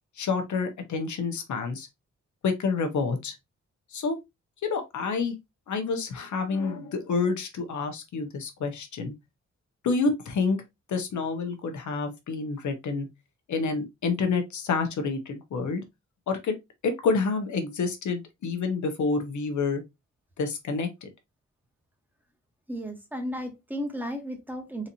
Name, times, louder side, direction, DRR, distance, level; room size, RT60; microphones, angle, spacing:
voice 1, 0.2-1.9 2.4-3.4 3.9-4.2 4.6-5.4 5.7-9.1 9.8-10.6 10.9-13.1 13.5-15.8 16.3-16.6 16.8-19.8 20.4-21.1, left 4 dB, 80° left, 0.9 m, -28 dB
voice 2, 22.7-24.9, equal, 5° right, 1.2 m, -34 dB
4.1 x 2.6 x 2.8 m
cardioid pair, 75°, 29 cm